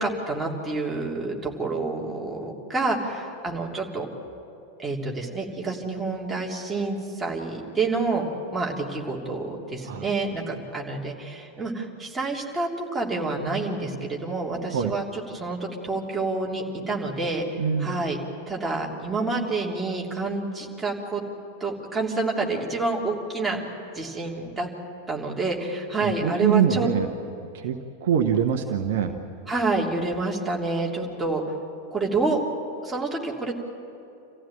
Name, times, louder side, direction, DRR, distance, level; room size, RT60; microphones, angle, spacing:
voice 1, 0.0-4.0 4.8-8.2 8.5-17.4 17.8-18.2 18.5-21.2 21.6-23.6 23.9-24.7 25.1-26.9 29.5-31.4 31.9-32.4 32.8-33.5, right 3 dB, 10° right, -2 dB, 3.2 m, -28 dB
voice 2, 17.6-18.1 26.0-27.1 27.5-29.1, right 8 dB, 55° right, 5 dB, 1.2 m, -24 dB
27.5 x 15.0 x 9.0 m, 2.7 s
figure-of-eight pair, 90°, 0 cm